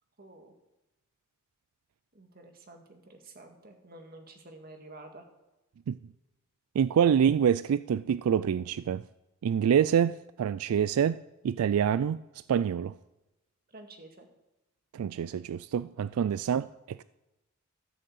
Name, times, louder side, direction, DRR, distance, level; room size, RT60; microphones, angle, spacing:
voice 1, 0.2-0.5 2.1-5.3 13.7-14.3, right 2 dB, 45° right, 1.9 m, -50 dB
voice 2, 6.8-9.0 9.4-11.2 11.4-12.2 12.5-12.9 14.9-17.0, right 8 dB, 85° right, 0.3 m, -26 dB
13.5 x 6.6 x 7.8 m
head